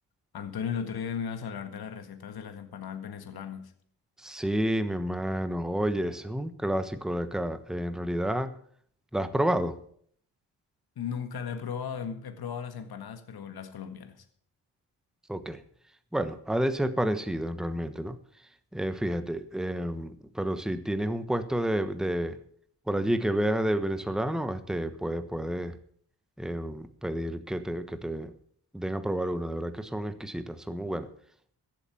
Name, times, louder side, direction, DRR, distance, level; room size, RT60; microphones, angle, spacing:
voice 1, 0.3-3.7 11.0-14.3, left 7 dB, 65° left, 7 dB, 1.8 m, -36 dB
voice 2, 4.2-8.5 9.1-9.8 15.3-15.6 16.1-18.2 18.7-22.4 22.9-25.8 26.4-28.3 28.7-31.1, right 1 dB, ahead, 10 dB, 1.1 m, -30 dB
14.5 x 8.7 x 7.1 m, 0.62 s
cardioid pair, 80°, 40 cm